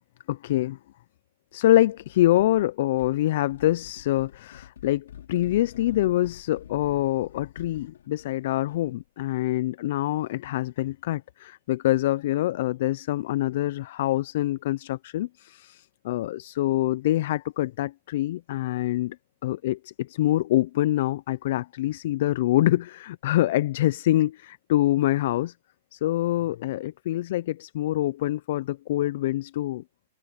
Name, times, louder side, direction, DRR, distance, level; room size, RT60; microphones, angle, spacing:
voice 1, 0.3-0.8 1.5-19.2 19.4-25.5 25.9-29.8, left 15 dB, 55° left, 0.3 m, -25 dB
sound 1, 2.0-2.7 3.0-9.0, left 10 dB, 90° left, 4.1 m, -48 dB
supercardioid pair, 165°, 0 cm